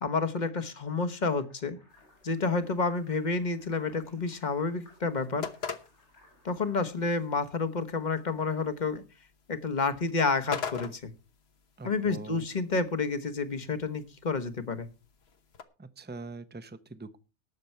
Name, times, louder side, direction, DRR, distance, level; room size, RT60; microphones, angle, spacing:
voice 1, 0.0-1.8 2.2-5.5 6.4-9.0 9.5-11.1 11.8-14.9, left 4 dB, 40° left, 9 dB, 1.2 m, -30 dB
sound 1, 1.4-6.7, left 1 dB, 80° left, 6.7 m, -62 dB
sound 2, 1.9-15.6, left 6 dB, 65° left, 1.3 m, -45 dB
voice 2, 11.8-12.5 15.8-17.2, right 3 dB, 10° right, 12 dB, 0.6 m, -43 dB
18.5 x 6.8 x 4.4 m, 0.31 s
omnidirectional pair, 1.2 m